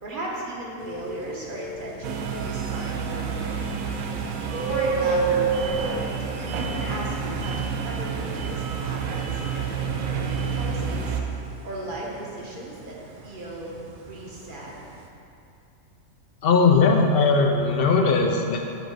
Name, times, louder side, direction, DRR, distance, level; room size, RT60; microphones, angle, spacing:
voice 1, 0.0-3.7 4.4-11.2 11.6-13.0 13.2-13.7 14.0-14.7, right 1 dB, 40° right, -4 dB, 1.2 m, -35 dB
sound 1, 0.8-15.1, right 5 dB, 60° right, 0.5 m, -33 dB
sound 2, 2.0-11.2, right 6 dB, 90° right, 1.1 m, -29 dB
voice 2, 16.4-18.6, left 4 dB, 55° left, 2 dB, 0.7 m, -19 dB
6.5 x 3.9 x 6.3 m, 2.7 s
omnidirectional pair, 1.4 m